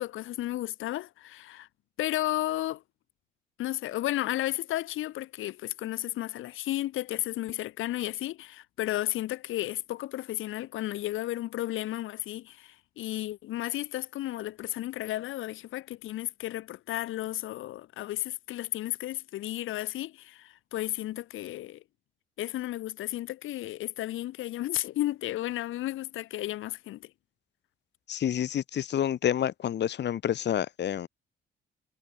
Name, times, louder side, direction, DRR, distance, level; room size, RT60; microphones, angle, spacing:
voice 1, 0.0-1.7 2.0-2.8 3.6-21.8 22.4-27.1, left 15 dB, 85° left, 2.9 m, -33 dB
voice 2, 28.1-31.1, left 10 dB, 60° left, 1.7 m, -28 dB
cardioid pair, 90°, 20 cm